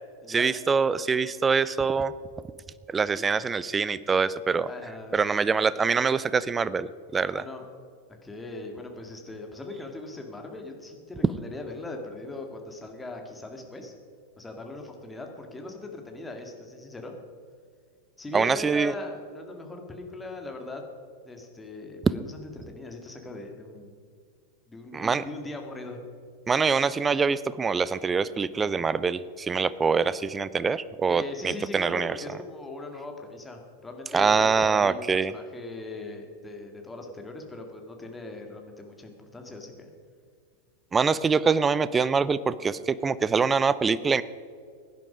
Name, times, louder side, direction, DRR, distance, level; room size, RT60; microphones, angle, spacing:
voice 1, 0.3-2.1 2.9-4.7 5.1-7.4 18.3-18.9 24.9-25.2 26.5-32.1 34.1-35.3 40.9-44.2, right 5 dB, 15° right, 17 dB, 0.5 m, -24 dB
voice 2, 4.6-5.6 7.3-7.6 8.2-13.9 14.4-17.1 18.2-20.8 21.3-23.9 24.7-26.0 31.1-39.9, left 2 dB, 10° left, 3 dB, 2.1 m, -40 dB
16.5 x 10.5 x 5.2 m, 2.2 s
figure-of-eight pair, 90°, 0 cm